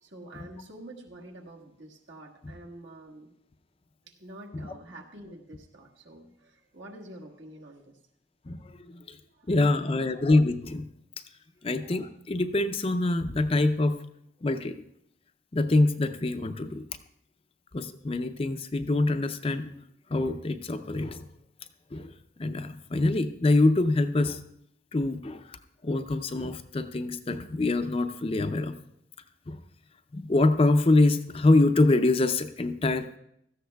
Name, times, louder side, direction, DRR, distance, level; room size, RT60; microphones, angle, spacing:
voice 1, 0.0-3.3 4.1-8.0 9.3-9.5, right 1 dB, 75° right, 0 dB, 1.5 m, -47 dB
voice 2, 8.5-9.2 9.5-10.9 11.6-14.0 14.4-14.7 15.5-16.8 17.7-19.7 20.1-21.2 21.9-22.1 22.4-24.4 24.9-25.6 25.8-28.7 29.5-29.6 30.1-33.1, left 2 dB, 30° left, 9 dB, 0.5 m, -25 dB
16.5 x 13.5 x 2.3 m, 0.76 s
head